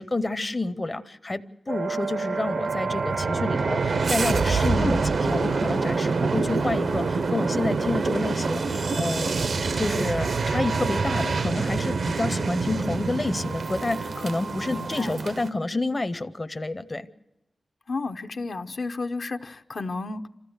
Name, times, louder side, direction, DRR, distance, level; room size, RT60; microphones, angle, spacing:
voice 1, 0.0-9.4 9.8-17.1, left 2 dB, 30° left, 11 dB, 0.6 m, -29 dB
sound 1, 1.7-15.5, right 4 dB, 80° right, 0.7 m, -26 dB
voice 2, 14.7-15.2 17.9-20.3, left 3 dB, 65° left, 7 dB, 0.7 m, -32 dB
27.0 x 14.0 x 7.9 m, 0.97 s
wide cardioid pair, 90°, 0 cm